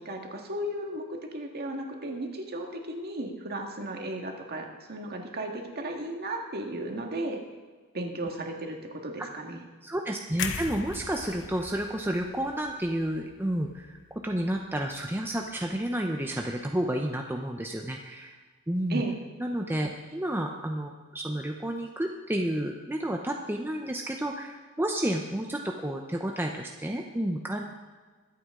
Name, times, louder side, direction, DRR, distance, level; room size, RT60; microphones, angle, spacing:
voice 1, 0.0-7.4 7.9-9.6 18.9-19.2, right 1 dB, 45° right, 2 dB, 1.8 m, -35 dB
voice 2, 9.8-14.0 14.2-18.3 18.7-19.0 19.4-27.6, right 1 dB, 10° right, 2 dB, 0.7 m, -31 dB
sound 1, 10.4-14.4 14.8-15.0, left 6 dB, 55° left, 0.9 m, -39 dB
23.0 x 8.5 x 3.8 m, 1.4 s
head